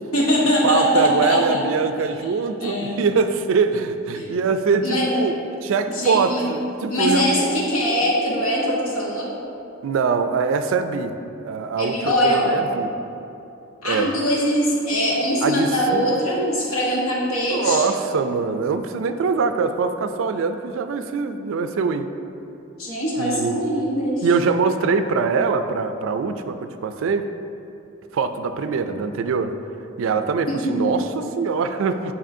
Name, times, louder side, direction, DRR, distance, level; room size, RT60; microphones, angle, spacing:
voice 1, 0.1-1.6 2.6-3.0 4.1-4.3 4.8-5.2 5.9-6.4 6.9-9.3 11.8-12.6 13.8-17.9 22.8-24.3 30.5-30.8, equal, 90° left, -4 dB, 1.2 m, -22 dB
voice 2, 0.6-7.3 9.8-11.1 11.4-12.0 12.2-12.9 13.8-14.1 15.4-16.2 17.5-22.1 23.2-23.6 24.2-27.3 28.1-29.5 30.0-32.1, right 5 dB, 65° right, 9 dB, 0.3 m, -23 dB
7.4 x 4.8 x 2.6 m, 2.7 s
head